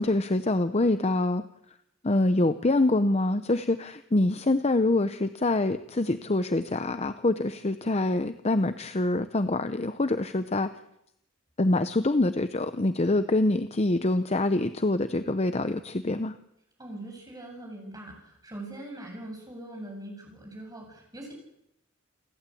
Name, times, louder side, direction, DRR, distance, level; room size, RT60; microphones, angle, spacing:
voice 1, 0.0-1.4 2.0-10.7 11.6-16.3, left 2 dB, 35° left, 11 dB, 0.7 m, -25 dB
voice 2, 16.8-21.3, right 1 dB, 20° right, 1 dB, 7.5 m, -42 dB
29.0 x 12.0 x 8.5 m, 0.79 s
head